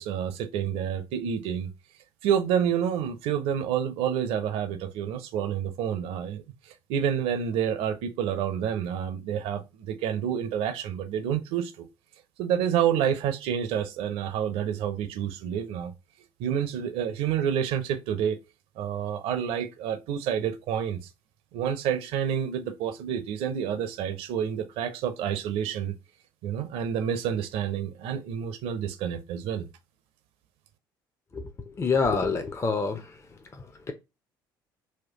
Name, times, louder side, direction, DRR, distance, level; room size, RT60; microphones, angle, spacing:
voice 1, 0.0-1.7 2.2-6.4 6.9-11.9 12.4-15.9 16.4-18.4 18.8-21.0 21.5-25.9 26.4-29.7, right 9 dB, 60° right, 0.6 m, -28 dB
voice 2, 31.3-33.2 33.5-33.9, left 4 dB, 25° left, 0.6 m, -28 dB
4.2 x 2.3 x 2.9 m
figure-of-eight pair, 50°, 11 cm